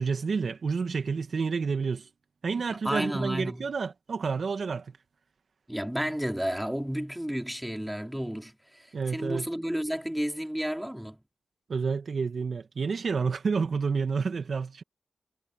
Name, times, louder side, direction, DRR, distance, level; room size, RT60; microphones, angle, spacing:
voice 1, 0.0-2.1 2.4-4.9 8.9-9.5 11.7-14.8, right 5 dB, 65° right, 1.8 m, -29 dB
voice 2, 2.7-3.7 5.7-11.2, equal, 5° right, 3.5 m, -32 dB
cardioid pair, 45°, 0 cm